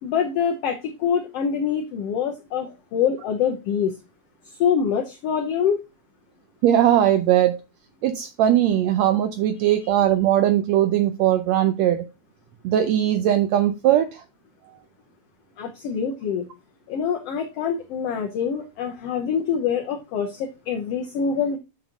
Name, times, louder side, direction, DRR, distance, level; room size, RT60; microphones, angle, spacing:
voice 1, 0.0-3.9 4.6-5.8 9.6-9.7 15.6-16.5 16.9-21.6, left 7 dB, 65° left, 4 dB, 1.6 m, -25 dB
voice 2, 6.6-7.6 8.0-12.0 12.6-14.2, right 11 dB, 80° right, 9 dB, 1.6 m, -19 dB
7.8 x 6.1 x 3.7 m, 0.26 s
omnidirectional pair, 3.6 m